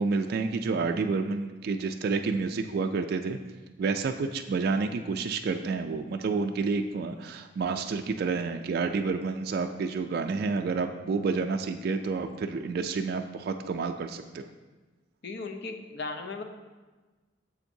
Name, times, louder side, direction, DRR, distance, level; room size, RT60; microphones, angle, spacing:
voice 1, 0.0-3.4 3.8-14.5, right 4 dB, 55° right, 5 dB, 0.3 m, -29 dB
voice 2, 15.2-16.4, left 3 dB, 65° left, 5 dB, 0.7 m, -36 dB
7.2 x 7.1 x 2.7 m, 1.3 s
head